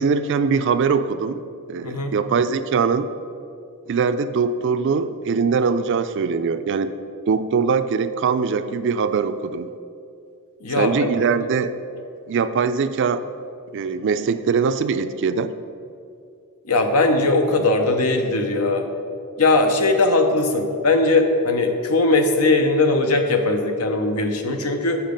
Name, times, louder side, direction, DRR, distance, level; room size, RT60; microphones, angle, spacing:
voice 1, 0.0-1.4 1.7-3.1 3.9-6.9 7.3-9.7 10.8-11.7 12.3-13.2 13.7-15.5, right 5 dB, 55° right, 11 dB, 0.4 m, -22 dB
voice 2, 1.8-2.1 10.6-11.1 16.7-18.9 19.4-25.0, left 2 dB, 80° left, 5 dB, 0.8 m, -19 dB
7.2 x 5.8 x 5.1 m, 2.5 s
head